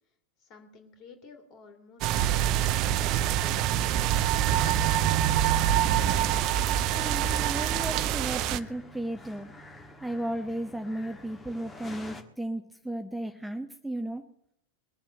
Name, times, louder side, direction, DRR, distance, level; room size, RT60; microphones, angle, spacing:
voice 1, 0.4-2.7 2.9-4.2, left 5 dB, 35° left, 5 dB, 3.1 m, -52 dB
sound 1, 2.0-8.6, right 11 dB, 40° right, 0.6 m, -25 dB
sound 2, 3.8-12.2, left 1 dB, 15° left, 1.7 m, -49 dB
voice 2, 6.9-9.5 10.0-14.2, right 1 dB, ahead, 6 dB, 0.9 m, -34 dB
21.5 x 7.3 x 7.7 m, 0.71 s
figure-of-eight pair, 90°, 0 cm